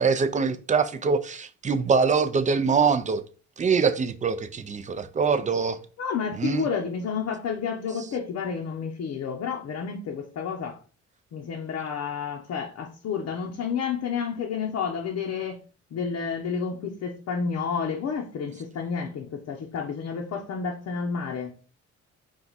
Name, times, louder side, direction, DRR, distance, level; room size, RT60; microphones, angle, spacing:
voice 1, 0.0-3.2 3.6-5.8 6.4-6.7, right 5 dB, 25° right, 0.4 m, -24 dB
voice 2, 6.0-10.8 11.3-15.6 15.9-21.5, left 6 dB, 60° left, 0.7 m, -30 dB
4.6 x 2.4 x 4.0 m
cardioid pair, 90°, 30 cm